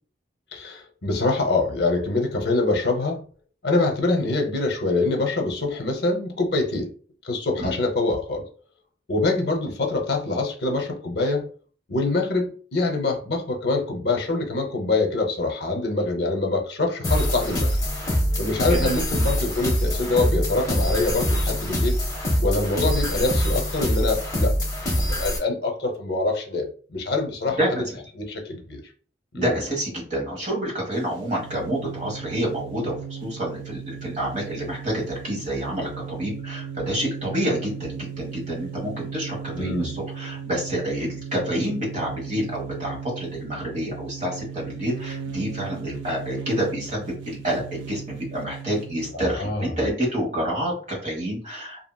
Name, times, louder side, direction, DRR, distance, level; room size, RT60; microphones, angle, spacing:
voice 1, 0.5-3.2 3.6-6.9 7.2-8.4 9.1-11.5 11.9-17.7 18.4-22.0 22.4-24.5 24.9-27.8 28.1-28.8 29.3-29.6 39.5-40.0 49.1-49.7, left 2 dB, 60° left, 2 dB, 0.6 m, -25 dB
sound 1, 17.0-25.4, equal, 20° left, 0.8 m, -24 dB
voice 2, 29.3-33.0 33.2-51.9, equal, 40° right, -3 dB, 1.3 m, -28 dB
sound 2, 30.9-49.2, right 8 dB, 90° right, 0.5 m, -37 dB
2.8 x 2.7 x 2.2 m, 0.42 s
head